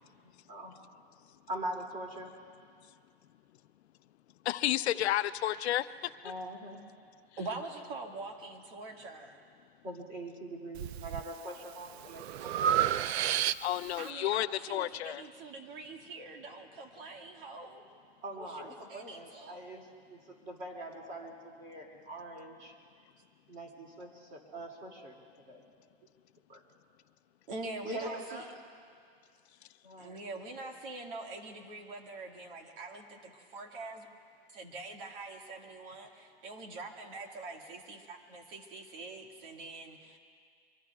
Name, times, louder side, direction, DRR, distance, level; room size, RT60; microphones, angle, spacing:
voice 1, 0.2-0.8 1.5-2.3 5.4-5.6 6.2-6.8 9.8-12.6 18.2-22.7 23.5-25.2 25.5-25.6 26.5-26.6 27.8-28.5 29.8-30.2, right 1 dB, 25° right, 1 dB, 2.5 m, -43 dB
voice 2, 4.5-5.9 13.6-15.2, left 13 dB, 80° left, 14 dB, 0.6 m, -31 dB
voice 3, 7.4-9.4 14.0-17.8 18.4-19.6 27.5-28.5 30.0-34.1 34.5-40.2, right 3 dB, 55° right, 2 dB, 2.0 m, -44 dB
Breathing, 10.7-11.2 11.7-14.0, right 10 dB, 80° right, 0.5 m, -30 dB
24.5 x 24.0 x 2.4 m, 2.2 s
supercardioid pair, 155°, 32 cm